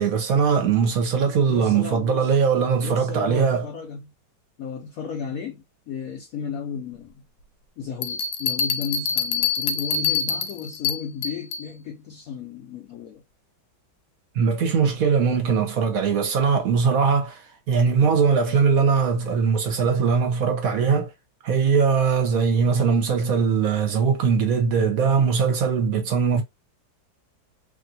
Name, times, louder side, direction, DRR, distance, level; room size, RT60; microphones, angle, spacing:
voice 1, 0.0-3.7 14.3-21.1 21.4-26.4, right 6 dB, 60° right, 1.1 m, -21 dB
voice 2, 1.5-2.4 2.8-4.1 4.6-7.2 7.8-13.2, left 6 dB, 70° left, 0.8 m, -34 dB
sound 1, 8.0-11.7, left 6 dB, 85° left, 1.3 m, -26 dB
3.0 x 2.5 x 2.7 m
omnidirectional pair, 2.0 m